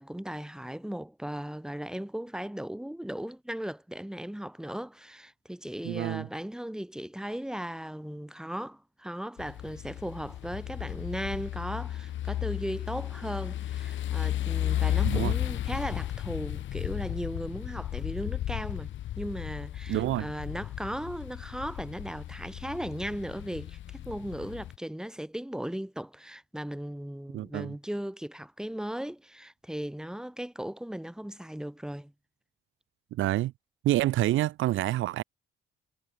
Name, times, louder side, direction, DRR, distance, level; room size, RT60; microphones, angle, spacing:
voice 1, 0.0-18.9 19.2-32.1, equal, 5° right, 3.3 m, -37 dB
voice 2, 5.8-6.3 15.0-15.3 19.9-20.3 27.3-27.7 33.1-33.5 33.8-35.2, right 15 dB, 80° right, 1.1 m, -27 dB
sound 1, 9.4-24.7, left 12 dB, 70° left, 1.4 m, -34 dB
cardioid pair, 90°, 20 cm